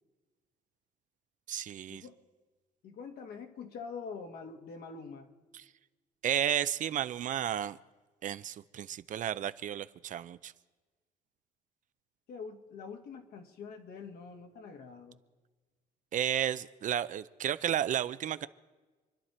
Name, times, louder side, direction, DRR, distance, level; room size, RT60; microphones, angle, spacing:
voice 1, 1.5-2.0 5.5-5.6 6.2-7.8 8.2-10.5 16.1-18.5, right 10 dB, 50° right, 0.6 m, -32 dB
voice 2, 2.8-5.3 12.3-15.2, left 5 dB, 70° left, 2.1 m, -45 dB
27.5 x 11.0 x 4.4 m
cardioid pair, 110°, 17 cm